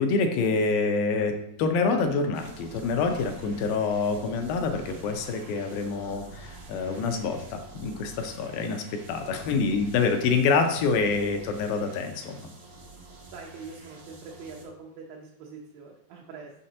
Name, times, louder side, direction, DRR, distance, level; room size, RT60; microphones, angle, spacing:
voice 1, 0.0-1.3 1.6-12.4, left 4 dB, 85° left, 5 dB, 2.4 m, -26 dB
sound 1, 2.3-14.7, right 2 dB, 45° right, 1.9 m, -47 dB
voice 2, 13.3-16.5, right 4 dB, 80° right, -1 dB, 2.5 m, -43 dB
6.4 x 5.8 x 2.8 m, 0.78 s
omnidirectional pair, 4.2 m